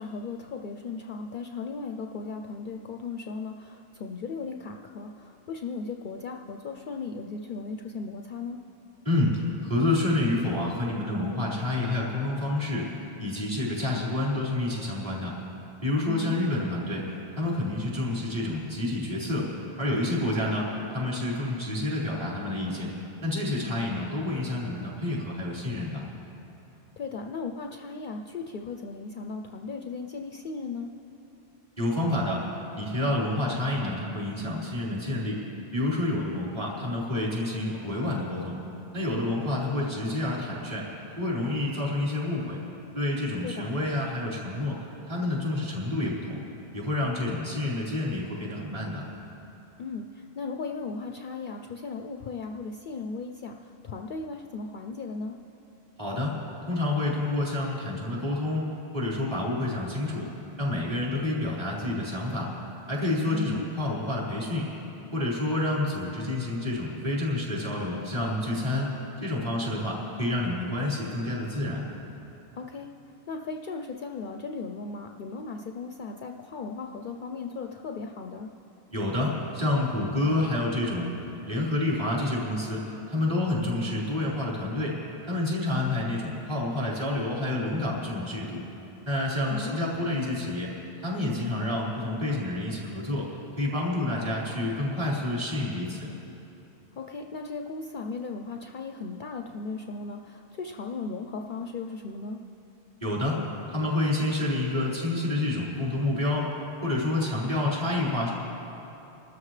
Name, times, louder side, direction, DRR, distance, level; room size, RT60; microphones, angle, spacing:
voice 1, 0.0-8.6 16.1-16.4 27.0-30.9 43.4-43.7 49.8-55.4 63.3-63.7 72.6-72.9 73.3-78.5 89.5-89.9 97.0-102.4, left 4 dB, 55° left, 3 dB, 0.6 m, -36 dB
voice 2, 9.0-12.9 13.2-15.3 15.8-17.0 17.4-19.5 19.8-22.9 23.2-26.0 31.8-32.4 32.7-35.4 35.7-38.6 38.9-40.9 41.2-42.6 42.9-44.8 45.1-46.4 46.7-49.0 56.0-56.3 56.7-58.7 58.9-60.3 60.6-62.5 62.9-64.7 65.1-68.9 69.2-71.9 78.9-81.1 81.5-85.0 85.3-88.6 89.0-90.7 91.0-93.3 93.6-96.1 103.0-103.4 103.7-106.6 106.8-108.3, left 2 dB, 30° right, -8 dB, 4.4 m, -28 dB
25.5 x 13.0 x 3.2 m, 2.9 s
omnidirectional pair, 1.1 m